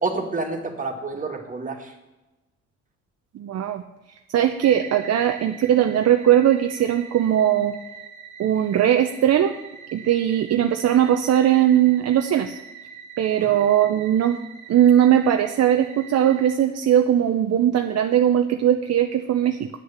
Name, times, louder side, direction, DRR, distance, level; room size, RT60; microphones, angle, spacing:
voice 1, 0.0-1.9 13.4-13.6, right 3 dB, 25° right, 2 dB, 2.1 m, -29 dB
voice 2, 3.3-3.8 4.3-7.8 8.4-9.5 9.9-12.6 13.2-14.4 14.7-19.7, right 10 dB, 55° right, 6 dB, 0.7 m, -19 dB
sound 1, 4.6-16.6, right 7 dB, 80° right, 1.6 m, -43 dB
9.3 x 6.5 x 7.2 m, 1.0 s
cardioid pair, 90°, 30 cm